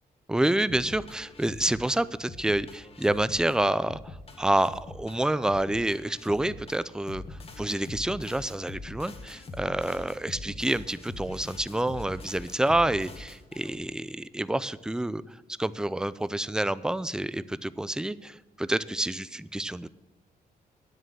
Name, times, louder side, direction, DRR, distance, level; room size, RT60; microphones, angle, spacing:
voice 1, 0.3-19.9, right 1 dB, 5° right, 16 dB, 0.4 m, -28 dB
sound 1, 0.7-13.9, left 2 dB, 40° left, 1.5 m, -43 dB
10.0 x 7.9 x 7.6 m, 1.1 s
cardioid pair, 120°, 16 cm